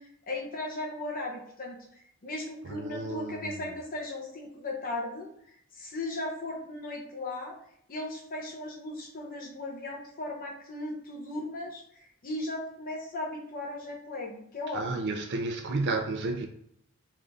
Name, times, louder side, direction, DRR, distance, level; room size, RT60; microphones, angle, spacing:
voice 1, 0.0-1.8 2.2-5.3 5.7-7.5 7.9-15.1, left 2 dB, 40° left, 0.7 m, -37 dB
voice 2, 2.6-3.7 14.7-16.5, right 3 dB, 50° right, 0.5 m, -32 dB
3.6 x 2.6 x 3.4 m
head